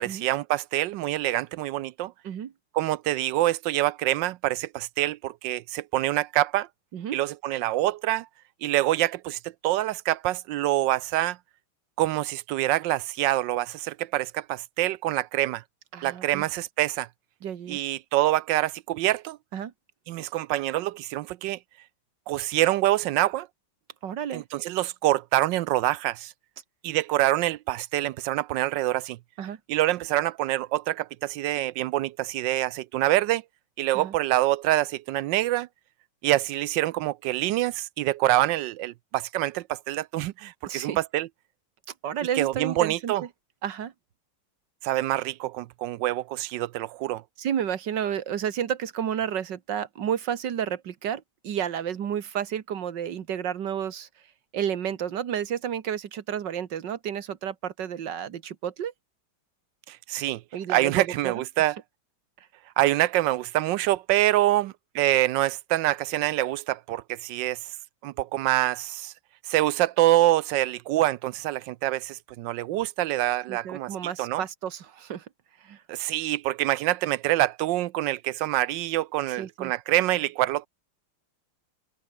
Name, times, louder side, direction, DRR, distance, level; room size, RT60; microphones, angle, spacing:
voice 1, 0.0-2.1 2.7-6.7 7.1-8.3 8.6-11.4 12.0-15.6 16.0-17.1 17.7-19.4 20.1-21.6 22.3-23.5 24.3-26.3 26.8-29.2 29.7-33.4 33.8-35.7 36.2-41.3 42.4-43.2 44.8-47.2 59.9-60.4 60.7-61.8 62.8-67.6 68.0-69.1 69.5-73.9 74.2-74.4 75.9-80.7, right 15 dB, 75° right, 1.1 m, -26 dB
voice 2, 15.9-16.4 17.4-17.8 19.5-19.7 24.0-24.4 29.4-29.6 33.9-34.2 40.7-41.0 42.0-43.1 43.6-43.9 47.4-54.1 54.5-58.9 60.5-61.3 73.5-75.3 75.6-75.8 79.4-79.7, right 9 dB, 60° right, 2.0 m, -31 dB
omnidirectional pair, 2.3 m